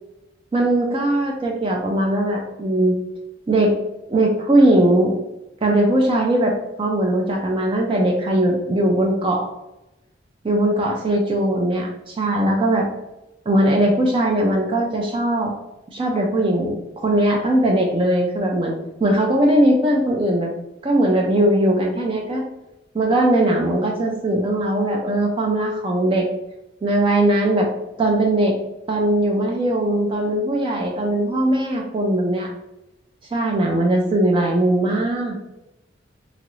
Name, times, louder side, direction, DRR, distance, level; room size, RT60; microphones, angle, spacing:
voice 1, 0.5-3.0 3.5-3.8 4.1-5.1 5.6-9.5 10.4-12.9 13.5-15.5 15.9-18.7 19.0-20.5 20.8-22.4 22.9-26.3 26.8-27.7 28.0-28.6 28.9-32.5 33.3-35.4, right 1 dB, 30° right, 1 dB, 0.3 m, -19 dB
2.9 x 2.4 x 3.0 m, 0.95 s
head